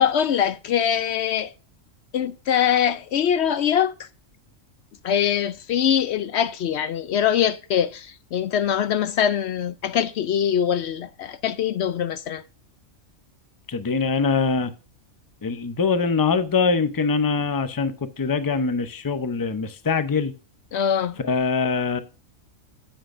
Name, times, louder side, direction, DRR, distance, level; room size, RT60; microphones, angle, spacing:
voice 1, 0.0-1.5 2.1-4.1 5.0-12.4 20.7-21.2, left 9 dB, 65° left, 0.7 m, -23 dB
voice 2, 13.7-14.7 15.4-20.3 21.2-22.0, left 5 dB, 25° left, 0.5 m, -23 dB
10.0 x 8.0 x 2.5 m
omnidirectional pair, 1.4 m